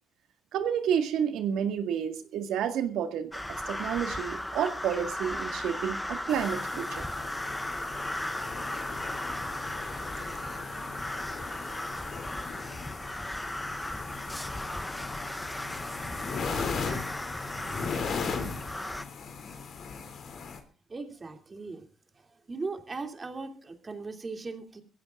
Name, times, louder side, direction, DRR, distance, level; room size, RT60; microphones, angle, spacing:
voice 1, 0.5-3.3 3.7-7.0, right 8 dB, 85° right, 7 dB, 1.9 m, -30 dB
sound 1, 3.3-19.0, left 1 dB, 5° left, 0.9 m, -36 dB
sound 2, 6.3-20.6, left 5 dB, 60° left, 3.0 m, -38 dB
voice 2, 20.9-21.8 22.2-24.8, right 3 dB, 30° right, 5 dB, 2.8 m, -38 dB
23.0 x 15.5 x 2.5 m, 0.34 s
cardioid pair, 90°, 0 cm